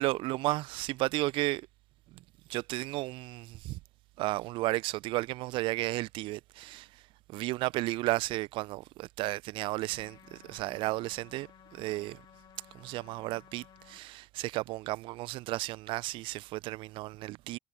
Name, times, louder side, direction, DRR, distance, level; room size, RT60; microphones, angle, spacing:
voice 1, 0.0-1.7 2.5-3.8 4.2-7.0 7.3-12.2 12.7-17.6, right 19 dB, 55° right, 0.9 m, -33 dB
sound 1, 9.9-14.0, left 10 dB, 45° left, 3.2 m, -57 dB
figure-of-eight pair, 55°, 10 cm